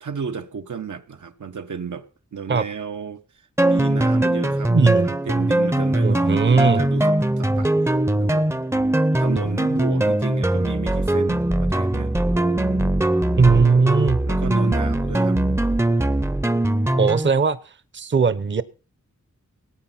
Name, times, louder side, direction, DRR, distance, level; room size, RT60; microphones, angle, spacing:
voice 1, 0.0-3.2 3.6-4.7 5.0-7.9 8.2-8.5 9.2-12.1 13.2-13.7 14.3-15.4, right 6 dB, 80° right, 1.1 m, -33 dB
sound 1, 3.6-17.3, right 1 dB, 10° right, 0.6 m, -21 dB
voice 2, 4.7-5.1 6.0-6.8 13.4-14.2 17.0-18.6, right 4 dB, 40° right, 0.8 m, -18 dB
18.5 x 9.1 x 5.8 m
wide cardioid pair, 90°, 30 cm